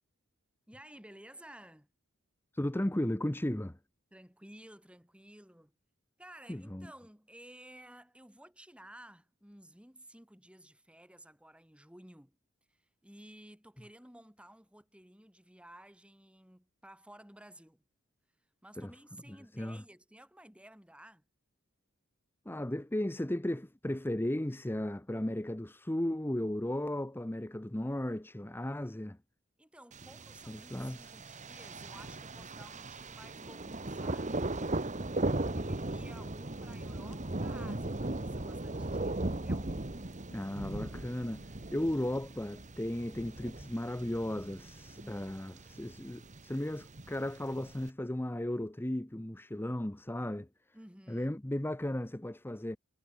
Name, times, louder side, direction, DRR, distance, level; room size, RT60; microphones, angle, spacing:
voice 1, 0.7-1.9 4.1-5.7 6.2-12.4 12.7-17.8 18.6-21.2 29.6-39.7 45.0-45.5 50.7-51.4, right 1 dB, 5° right, 5.5 m, -55 dB
voice 2, 2.5-3.8 6.5-6.9 18.8-18.9 19.6-19.8 22.5-29.2 30.5-31.1 40.3-50.5 51.1-52.8, left 1 dB, 10° left, 0.8 m, -35 dB
Thunder, 29.9-47.9, right 2 dB, 35° right, 1.7 m, -38 dB
head